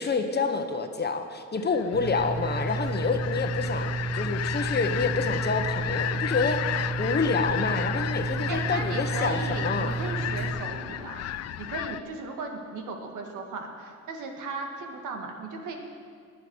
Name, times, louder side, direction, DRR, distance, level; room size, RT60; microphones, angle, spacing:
voice 1, 0.0-6.6 7.0-10.0, left 4 dB, 35° left, 6 dB, 1.3 m, -28 dB
sound 1, 1.6-12.0, left 12 dB, 55° left, 0.5 m, -33 dB
sound 2, 1.9-10.5, right 3 dB, 60° right, 1.9 m, -31 dB
voice 2, 8.5-11.2 11.6-15.8, right 3 dB, 85° right, 3 dB, 1.9 m, -36 dB
20.0 x 7.0 x 6.4 m, 2.1 s
cardioid pair, 90°, 30 cm